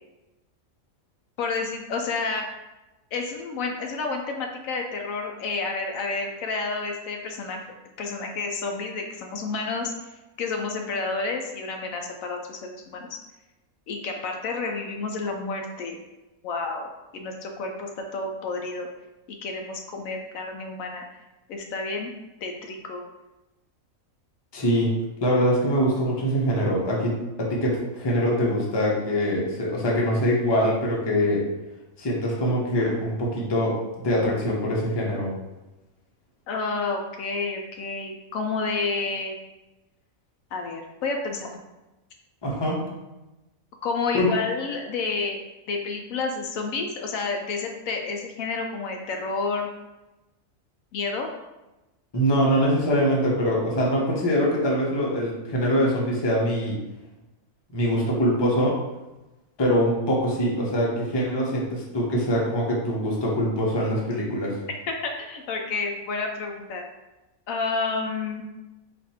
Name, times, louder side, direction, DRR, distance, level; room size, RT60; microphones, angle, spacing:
voice 1, 1.4-2.5 3.1-7.6 8.0-9.9 10.4-13.2 13.9-15.9 16.4-18.9 19.3-21.0 21.5-22.1 22.4-23.0 36.5-39.4 40.5-41.6 43.8-49.7 50.9-51.3 64.9-66.8 67.5-68.4, left 4 dB, 75° left, 3 dB, 1.0 m, -30 dB
voice 2, 24.5-24.9 25.2-27.1 27.4-31.4 32.0-35.3 42.4-42.8 44.1-44.3 52.1-56.7 57.7-58.8 59.6-64.6, equal, 25° left, -4 dB, 0.7 m, -23 dB
4.2 x 2.5 x 4.2 m, 1.0 s
omnidirectional pair, 1.5 m